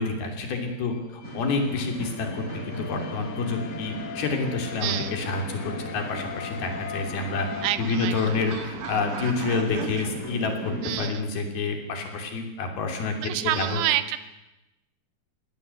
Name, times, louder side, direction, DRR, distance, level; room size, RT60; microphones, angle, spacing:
voice 1, 0.0-7.5 7.8-13.8, left 4 dB, 55° left, 4 dB, 4.6 m, -28 dB
sound 1, 0.6-7.7, left 8 dB, 75° left, 3.3 m, -40 dB
sound 2, 1.2-11.1, right 1 dB, 15° right, 5.5 m, -38 dB
voice 2, 4.8-5.2 7.6-8.4 10.8-11.3 13.2-14.2, right 13 dB, 80° right, 13 dB, 3.1 m, -28 dB
sound 3, 6.3-10.1, right 5 dB, 45° right, 2.1 m, -40 dB
22.5 x 17.5 x 8.2 m, 0.97 s
omnidirectional pair, 5.4 m